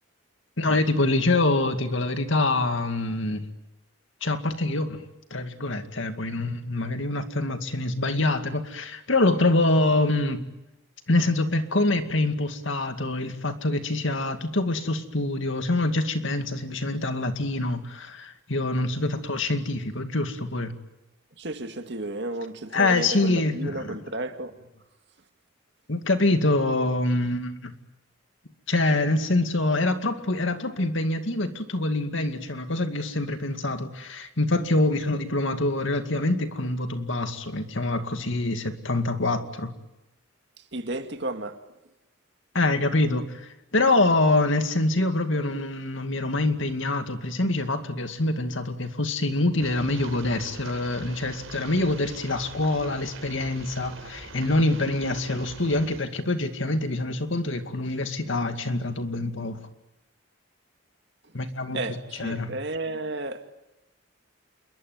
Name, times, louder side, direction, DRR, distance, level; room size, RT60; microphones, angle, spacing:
voice 1, 0.6-3.4 4.2-5.0 5.3-10.5 11.1-20.7 22.7-24.0 25.9-27.7 28.7-39.7 42.5-59.6 61.3-61.8 62.2-62.5, left 2 dB, 65° left, 2.3 m, -25 dB
voice 2, 21.4-24.6 40.7-41.6 61.7-63.4, right 2 dB, 55° right, 2.1 m, -32 dB
sound 1, 49.6-56.0, right 3 dB, 75° right, 4.4 m, -43 dB
28.0 x 22.5 x 9.4 m
head